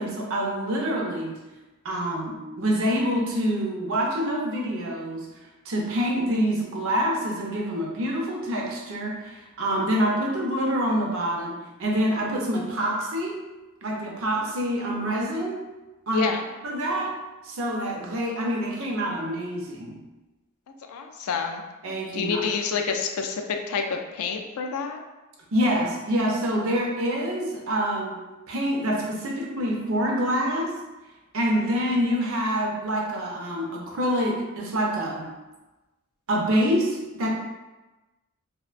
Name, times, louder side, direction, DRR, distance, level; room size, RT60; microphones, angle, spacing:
voice 1, 0.0-1.4 1.8-5.3 5.6-13.5 13.8-15.7 16.1-16.3 16.6-17.2 17.4-20.0 21.8-22.4 25.5-28.2 28.5-30.8 31.3-35.3 36.3-37.3, equal, 65° right, -1 dB, 0.5 m, -26 dB
voice 2, 16.1-16.4 20.9-21.6 22.1-25.0 31.6-31.7, left 5 dB, 70° left, 5 dB, 0.3 m, -28 dB
2.5 x 2.1 x 2.4 m, 1.1 s
head